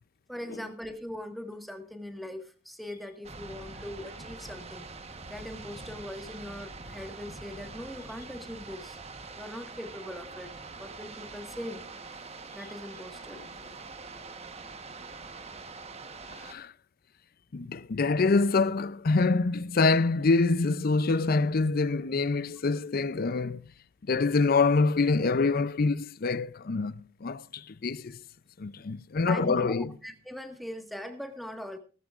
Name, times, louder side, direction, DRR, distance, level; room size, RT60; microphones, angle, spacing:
voice 1, 0.3-4.8 5.3-9.0 9.4-10.5 10.8-11.9 12.5-13.4 29.2-31.8, left 1 dB, ahead, 1.6 m, -40 dB
sound 1, 3.2-16.5, right 3 dB, 30° right, 1.2 m, -44 dB
voice 2, 16.4-16.7 17.5-23.7 24.1-28.2 28.6-29.9, left 3 dB, 50° left, 0.5 m, -26 dB
17.5 x 14.0 x 2.5 m
head